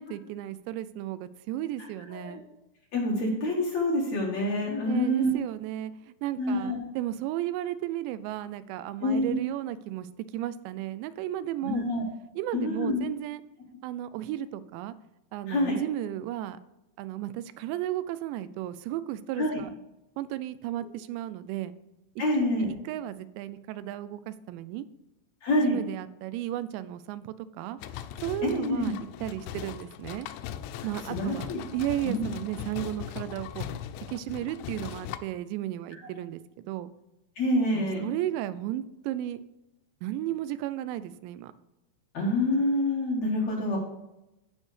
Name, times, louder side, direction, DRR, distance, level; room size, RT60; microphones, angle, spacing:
voice 1, 0.0-2.4 4.8-10.1 10.3-11.9 12.4-13.4 13.8-15.0 15.3-16.6 17.0-19.7 20.2-21.7 22.3-24.9 25.6-27.8 28.2-28.9 29.2-30.3 30.8-33.7 34.1-36.9 37.7-39.4 40.0-41.5, right 13 dB, 90° right, 15 dB, 2.8 m, -34 dB
voice 2, 2.9-5.3 6.4-6.8 9.0-9.4 11.6-12.0 12.5-13.0 15.5-15.8 19.4-19.5 22.2-22.7 25.4-25.8 28.4-28.9 30.8-31.6 32.0-32.2 37.4-38.1 42.1-43.8, left 1 dB, 60° left, -2 dB, 2.1 m, -27 dB
sound 1, 27.8-35.2, left 10 dB, 85° left, 2.9 m, -39 dB
15.5 x 5.4 x 3.2 m, 0.92 s
omnidirectional pair, 5.0 m